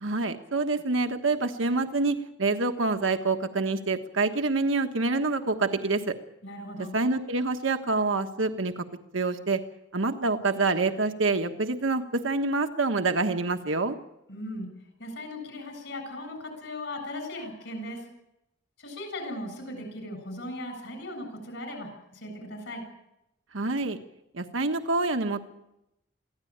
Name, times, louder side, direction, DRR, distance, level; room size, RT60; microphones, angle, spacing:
voice 1, 0.0-6.2 6.9-8.8 9.1-9.6 9.9-14.0 23.5-24.0 24.3-25.4, right 3 dB, 75° right, 6 dB, 1.3 m, -26 dB
voice 2, 6.4-6.9 14.3-14.7 15.0-18.1 18.8-22.8, left 1 dB, 60° left, 6 dB, 7.8 m, -38 dB
23.5 x 16.0 x 8.8 m, 0.86 s
head